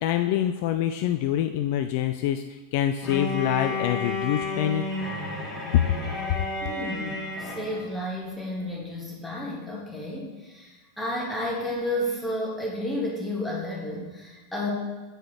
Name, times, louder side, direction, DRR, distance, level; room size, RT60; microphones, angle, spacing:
voice 1, 0.0-2.4 2.7-4.8 5.7-5.8, left 11 dB, 50° left, 8 dB, 0.3 m, -25 dB
Bowed string instrument, 3.0-7.9, left 2 dB, 25° left, 1.7 m, -31 dB
voice 2, 6.6-14.7, left 1 dB, ahead, -5 dB, 1.9 m, -32 dB
7.9 x 4.8 x 4.3 m, 1.3 s
figure-of-eight pair, 90°, 0 cm